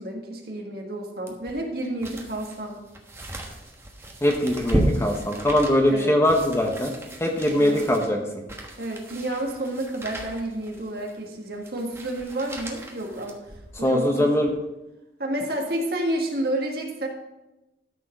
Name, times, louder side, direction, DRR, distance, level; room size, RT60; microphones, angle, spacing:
voice 1, 0.0-2.8 5.9-6.2 7.5-7.9 8.8-13.4 13.8-14.3 15.2-17.1, right 1 dB, 55° right, 1 dB, 1.8 m, -30 dB
sound 1, 1.3-13.9 14.4-14.5, right 1 dB, 15° right, 1.2 m, -34 dB
voice 2, 4.2-6.9 7.2-8.2 13.8-14.5, left 1 dB, 15° left, 2 dB, 1.0 m, -21 dB
12.5 x 4.7 x 6.0 m, 0.99 s
head